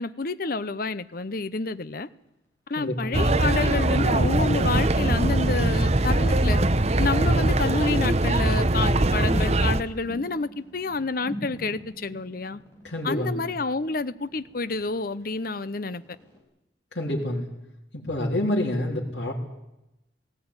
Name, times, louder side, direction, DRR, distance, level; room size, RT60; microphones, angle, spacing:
voice 1, 0.0-2.1 2.7-6.6 7.0-12.6 13.0-16.0, left 3 dB, 55° left, 0.8 m, -29 dB
sound 1, 1.1-2.3 3.3-6.3 6.6-6.7 7.2-16.4, equal, 15° left, 5.8 m, -47 dB
voice 2, 2.8-3.3 12.8-13.5 16.9-17.5 18.0-19.3, left 1 dB, 75° left, 3.7 m, -27 dB
sound 2, 3.1-9.8, right 1 dB, 35° right, 0.9 m, -22 dB
18.0 x 17.0 x 9.8 m
head